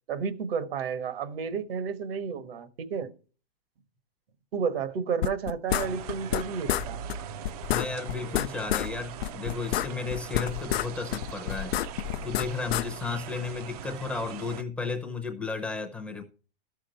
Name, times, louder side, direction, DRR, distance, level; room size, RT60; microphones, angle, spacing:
voice 1, 0.1-3.1 4.5-7.0, right 6 dB, 70° right, 1.4 m, -31 dB
sound 1, 5.2-6.4 6.7-6.8 7.1-7.2 7.4-8.9 9.2-10.9 11.1-12.8, left 13 dB, 80° left, 0.5 m, -28 dB
sound 2, 5.7-14.6, right 8 dB, 40° right, 0.5 m, -41 dB
voice 2, 7.6-11.9 12.2-16.2, left 4 dB, 5° left, 0.6 m, -34 dB
12.5 x 6.4 x 4.3 m
hypercardioid pair, 160°, 30 cm